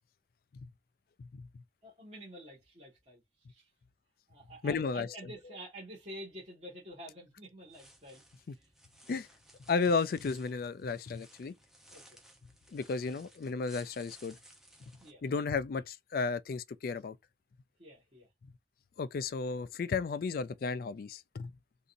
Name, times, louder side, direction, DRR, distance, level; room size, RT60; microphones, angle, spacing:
voice 1, 1.8-3.2 3.5-3.7 4.3-8.7 11.9-12.2 15.0-15.2 17.8-18.3, equal, 35° right, 1.6 m, -49 dB
voice 2, 4.6-5.2 8.5-8.6 9.1-9.3 9.7-11.5 12.7-14.4 15.2-17.2 19.0-21.5, left 4 dB, 50° left, 0.3 m, -33 dB
sound 1, 7.6-15.1, equal, ahead, 0.7 m, -59 dB
3.9 x 2.6 x 2.6 m
head